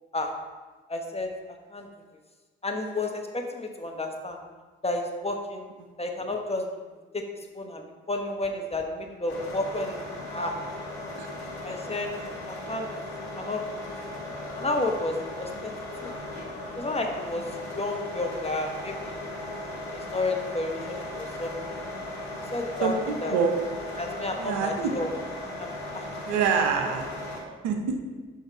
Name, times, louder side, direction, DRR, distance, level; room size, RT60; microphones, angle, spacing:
voice 1, 0.9-1.9 2.6-4.4 4.8-5.6 6.0-6.7 7.1-7.2 7.5-10.5 11.6-12.1 12.5-12.9 13.4-13.6 14.6-15.7 16.0-16.1 16.7-17.5 17.8-19.2 19.9-21.8 22.5-23.4 24.0-25.1 25.6-26.0 26.6-26.7, left 2 dB, 20° left, 3 dB, 1.2 m, -31 dB
sound 1, 9.3-27.4, left 1 dB, 85° left, 1.1 m, -37 dB
voice 2, 22.8-23.5 24.4-24.9 26.3-27.0 27.6-28.0, right 6 dB, 70° right, 4 dB, 0.9 m, -26 dB
6.6 x 5.6 x 4.6 m, 1.3 s
hypercardioid pair, 45°, 31 cm